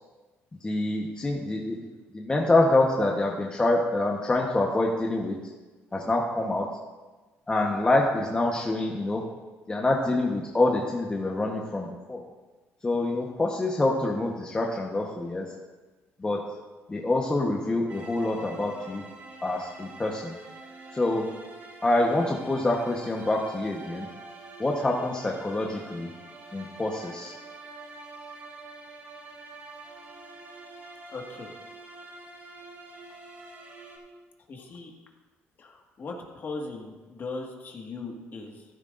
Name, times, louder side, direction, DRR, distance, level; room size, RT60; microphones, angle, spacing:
voice 1, 0.6-1.8 2.1-5.4 5.9-6.7 7.5-9.2 9.7-12.2 12.8-15.5 16.2-16.4 16.9-19.0 19.4-20.3 20.9-21.3 21.8-24.1 24.6-26.1 26.5-27.3, left 2 dB, 20° left, -1 dB, 1.1 m, -26 dB
sound 1, 17.9-34.0, right 3 dB, 40° right, 2.4 m, -46 dB
voice 2, 31.1-31.5 34.5-34.9 35.6-38.6, left 3 dB, 45° left, 1 dB, 1.8 m, -38 dB
14.0 x 12.0 x 2.6 m, 1.2 s
cardioid pair, 115°, 5 cm